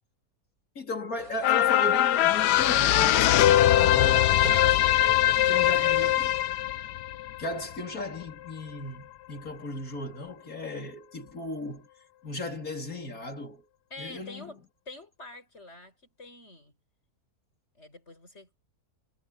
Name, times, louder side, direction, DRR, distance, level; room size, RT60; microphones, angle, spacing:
voice 1, 0.8-4.3 5.5-6.3 7.4-11.9 12.2-13.6 14.0-14.5, left 2 dB, 60° left, 4.2 m, -36 dB
sound 1, 1.2-6.3, right 3 dB, 60° right, 4.2 m, -44 dB
sound 2, 1.4-8.1 8.5-8.6, left 13 dB, 90° left, 1.2 m, -22 dB
voice 2, 5.6-6.0 13.9-16.8 17.7-18.6, left 2 dB, 40° left, 7.3 m, -46 dB
omnidirectional pair, 1.7 m